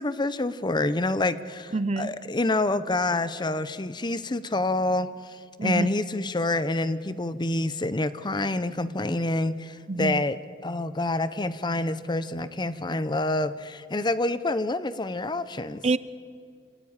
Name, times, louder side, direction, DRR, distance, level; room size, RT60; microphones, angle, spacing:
voice 1, 0.0-15.8, left 2 dB, 25° left, 14 dB, 0.8 m, -27 dB
voice 2, 1.7-2.1 5.6-5.9 9.9-10.2 15.8-16.0, right 3 dB, 35° right, 16 dB, 0.6 m, -26 dB
28.0 x 18.5 x 8.9 m, 2.2 s
head